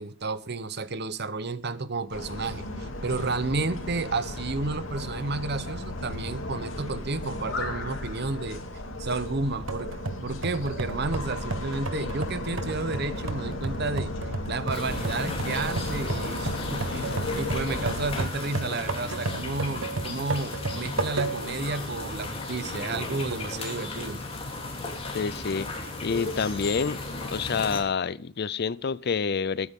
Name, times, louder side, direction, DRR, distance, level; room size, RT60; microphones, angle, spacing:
voice 1, 0.0-8.6 9.0-9.9 10.2-14.1 14.5-24.2, right 3 dB, 50° right, 0.9 m, -31 dB
sound 1, 2.1-18.3, left 1 dB, 65° left, 2.7 m, -35 dB
sound 2, 9.7-21.6 22.1-22.2 22.9-23.5, right 3 dB, 80° right, 1.4 m, -34 dB
sound 3, 14.7-27.8, left 2 dB, 30° left, 3.2 m, -35 dB
voice 2, 25.1-25.7 26.0-27.0 27.3-29.7, left 5 dB, 50° left, 0.5 m, -28 dB
21.5 x 9.5 x 3.7 m
head